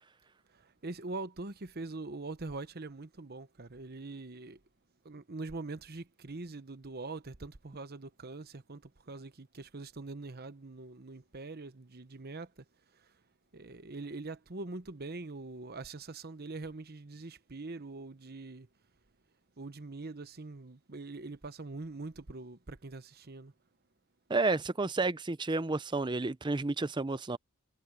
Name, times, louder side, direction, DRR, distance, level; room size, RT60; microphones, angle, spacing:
voice 1, 0.5-4.6 5.0-12.6 12.9-13.1 13.5-18.7 19.6-23.5, right 3 dB, 45° right, 1.0 m, -43 dB
voice 2, 24.3-27.4, right 3 dB, 20° right, 0.5 m, -31 dB
head